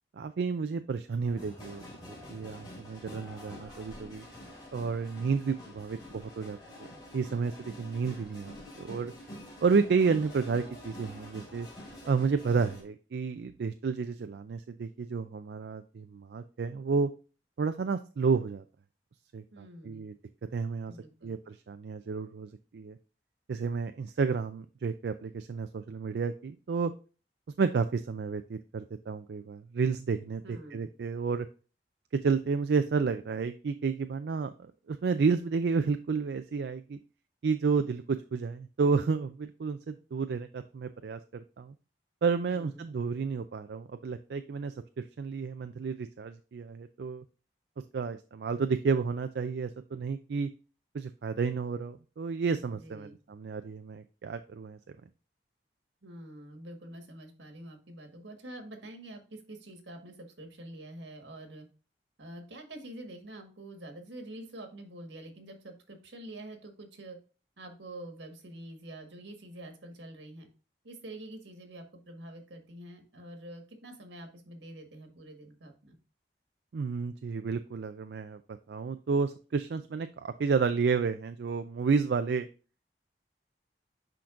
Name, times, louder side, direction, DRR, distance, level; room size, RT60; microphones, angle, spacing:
voice 1, 0.1-4.3 4.7-6.9 7.1-9.1 9.6-11.7 12.1-17.1 17.6-18.6 19.3-20.1 20.5-20.9 21.2-23.0 23.5-26.9 27.6-31.5 32.1-37.0 37.4-41.7 42.2-47.2 47.9-50.5 50.9-54.8 76.7-82.5, right 5 dB, 70° right, 9 dB, 0.4 m, -31 dB
sound 1, 1.2-12.8, left 1 dB, 25° left, 3.1 m, -47 dB
voice 2, 19.5-20.1 20.9-21.4 30.4-30.9 42.5-42.8 52.7-53.2 56.0-61.7 62.2-67.2 67.6-70.5 70.8-76.0, right 1 dB, 85° right, 4 dB, 1.6 m, -46 dB
10.0 x 3.9 x 2.5 m, 0.34 s
head